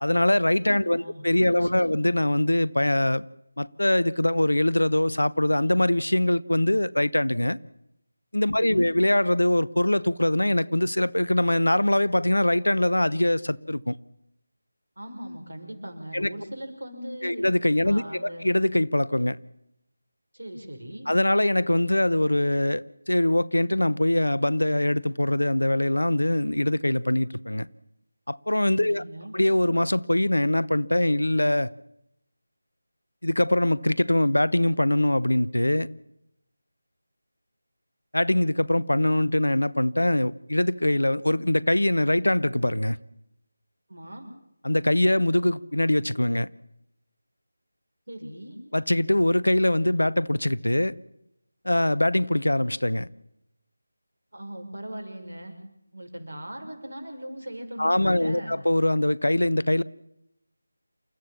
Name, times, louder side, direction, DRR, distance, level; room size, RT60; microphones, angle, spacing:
voice 1, 0.0-3.2 3.6-7.6 8.3-14.0 16.1-16.3 17.2-19.4 21.1-27.7 28.3-29.0 29.3-31.7 33.2-35.9 38.1-43.0 44.6-46.5 48.7-50.9 51.6-53.1 57.8-59.8, left 1 dB, 70° left, 0.9 m, -23 dB
voice 2, 0.7-1.3 1.6-2.0 8.6-9.0 15.0-17.4 17.8-18.5 20.3-21.1 28.9-29.3 43.9-44.3 48.1-48.6 54.3-55.5 55.9-58.6, right 1 dB, 60° right, 5.9 m, -39 dB
28.5 x 14.5 x 7.2 m
figure-of-eight pair, 165°, 0 cm